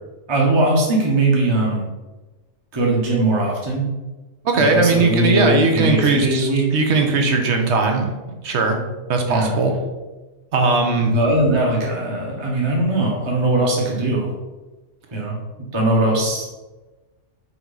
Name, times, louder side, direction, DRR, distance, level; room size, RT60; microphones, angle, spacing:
voice 1, 0.3-1.8 2.7-3.8 4.6-6.6 9.3-9.5 11.1-14.3 15.1-15.4 15.7-16.4, right 2 dB, 20° right, -3 dB, 1.1 m, -20 dB
voice 2, 4.4-8.1 8.4-8.8 9.1-9.7 10.5-11.1, right 3 dB, 60° right, 3 dB, 1.2 m, -18 dB
5.7 x 4.5 x 4.0 m, 1.2 s
omnidirectional pair, 1.3 m